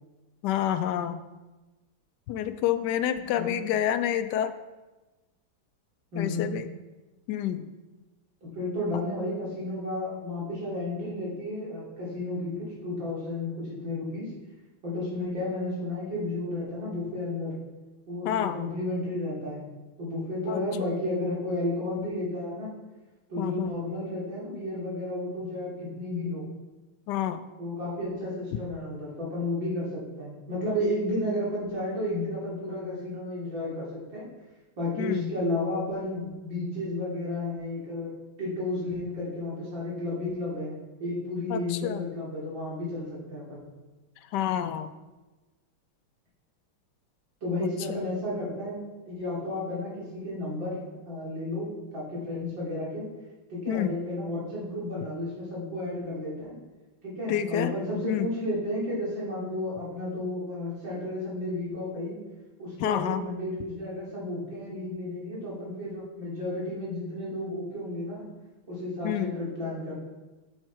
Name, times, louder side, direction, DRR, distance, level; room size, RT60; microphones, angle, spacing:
voice 1, 0.4-1.2 2.3-4.5 6.2-6.7 7.3-7.7 18.2-18.6 20.5-20.6 23.4-23.7 27.1-27.4 35.0-35.3 41.5-42.1 44.3-44.9 47.6-48.0 53.7-53.9 57.3-57.7 58.0-58.3 62.8-63.2 69.0-69.3, left 11 dB, 75° left, 10 dB, 1.0 m, -28 dB
voice 2, 6.1-6.5 8.5-14.3 14.8-17.5 18.1-19.6 20.0-22.7 23.3-26.5 27.6-34.3 34.8-38.1 38.4-43.7 47.4-48.8 49.1-53.1 53.5-56.6 57.0-62.2 62.6-68.3 68.7-69.9, left 1 dB, 65° right, -6 dB, 3.5 m, -32 dB
7.5 x 7.3 x 4.5 m, 1.1 s
omnidirectional pair, 2.2 m